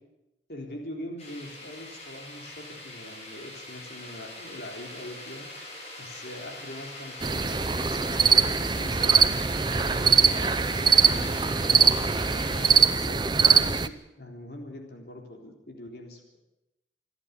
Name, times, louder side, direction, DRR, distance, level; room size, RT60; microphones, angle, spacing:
voice 1, 0.5-9.6 9.9-13.9 14.2-16.4, left 1 dB, 60° left, 1 dB, 3.8 m, -43 dB
sound 1, 1.2-12.7, left 1 dB, 35° left, 7.1 m, -42 dB
sound 2, 7.2-13.9, right 6 dB, 25° right, 0.6 m, -22 dB
27.5 x 11.0 x 9.6 m, 0.95 s
head